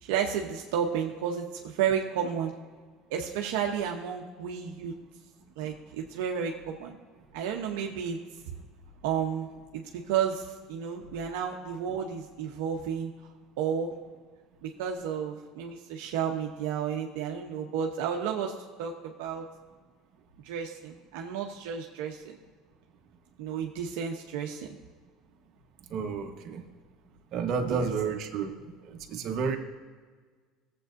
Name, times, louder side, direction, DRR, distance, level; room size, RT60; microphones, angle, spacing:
voice 1, 0.0-2.5 3.1-4.9 5.6-7.0 7.3-8.2 9.0-13.1 13.6-13.9 14.6-19.4 20.4-22.4 23.4-24.7 27.7-27.9, right 8 dB, 80° right, 1 dB, 0.8 m, -32 dB
voice 2, 25.9-26.6 27.3-28.5 28.8-29.6, right 5 dB, 55° right, 3 dB, 1.2 m, -31 dB
17.0 x 7.7 x 2.6 m, 1.5 s
supercardioid pair, 100°, 0 cm